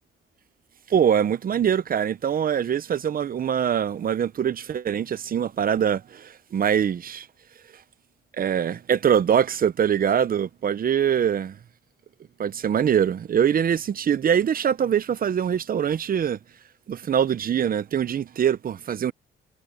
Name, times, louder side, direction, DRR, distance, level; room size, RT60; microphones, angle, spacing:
voice 1, 0.9-7.3 8.4-11.6 12.4-16.4 16.9-19.1, right 8 dB, 45° right, 0.8 m, -23 dB
cardioid pair, 90°, 20 cm